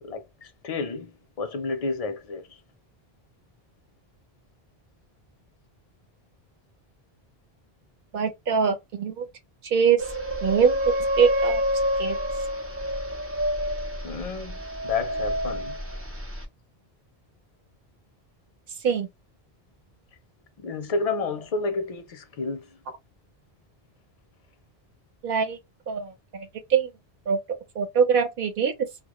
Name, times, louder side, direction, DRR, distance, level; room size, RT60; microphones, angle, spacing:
voice 1, 0.0-2.6 14.0-15.8 20.6-22.8, left 4 dB, 50° left, 0.4 m, -31 dB
voice 2, 8.1-9.3 9.7-10.0 10.4-11.6 12.0-12.2 18.8-19.1 25.2-25.6 25.9-26.9 27.3-27.4 27.8-28.7, right 6 dB, 65° right, 0.8 m, -23 dB
sound 1, 10.0-16.4, equal, 20° right, 0.3 m, -28 dB
2.1 x 2.0 x 2.9 m
omnidirectional pair, 1.0 m